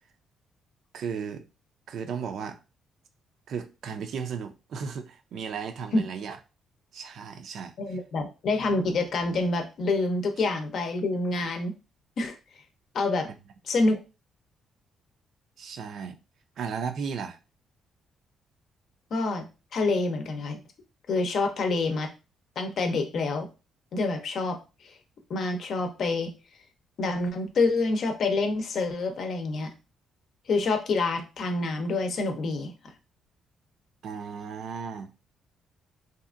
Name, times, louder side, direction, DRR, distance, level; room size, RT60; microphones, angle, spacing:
voice 1, 0.9-1.4 1.9-2.6 3.5-6.4 6.9-8.0 15.6-16.2 16.6-17.4 34.0-35.1, right 6 dB, 65° right, 0.4 m, -35 dB
voice 2, 7.8-11.7 12.2-12.4 12.9-13.3 13.7-14.0 19.1-19.5 19.7-20.6 21.1-22.1 22.6-23.5 23.9-24.9 25.3-26.3 27.0-29.7 30.5-32.7, left 3 dB, 60° left, 0.6 m, -27 dB
2.7 x 2.4 x 2.4 m
cardioid pair, 90°, 0 cm